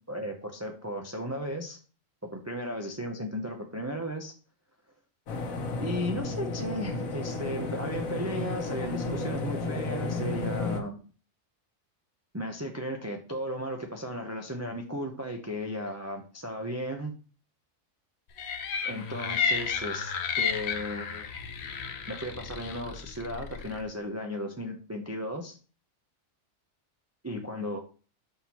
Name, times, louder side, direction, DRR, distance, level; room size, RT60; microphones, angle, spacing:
voice 1, 0.1-1.8 2.3-4.3 5.8-11.0 12.3-17.1 18.8-21.4 22.1-25.6 27.2-27.8, equal, 20° right, 2 dB, 0.5 m, -35 dB
sound 1, 5.3-10.8, left 3 dB, 85° left, 1.3 m, -33 dB
sound 2, 18.4-23.8, left 6 dB, 60° left, 0.9 m, -32 dB
5.9 x 5.5 x 3.0 m, 0.37 s
omnidirectional pair, 1.4 m